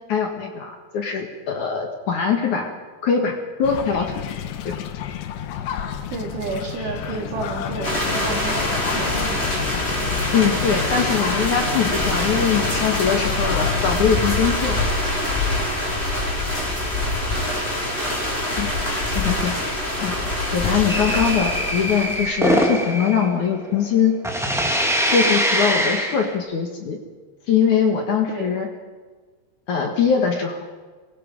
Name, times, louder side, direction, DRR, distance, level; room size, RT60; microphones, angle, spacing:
voice 1, 0.1-2.7 3.0-4.1 4.6-4.8 10.3-14.8 18.6-18.7 19.1-19.6 20.0-20.2 20.5-24.1 25.1-27.0 27.5-28.7 29.7-30.6, left 7 dB, 55° left, 3 dB, 2.6 m, -22 dB
sound 1, 3.6-14.0, left 9 dB, 80° left, 3.2 m, -30 dB
voice 2, 6.1-9.5 28.3-28.5, right 4 dB, 80° right, 0 dB, 5.3 m, -31 dB
sound 2, 7.8-22.3, left 1 dB, 15° left, 5.1 m, -24 dB
sound 3, 20.9-24.0 24.2-26.3, equal, ahead, 0.9 m, -23 dB
25.5 x 21.5 x 5.4 m, 1.4 s
omnidirectional pair, 4.9 m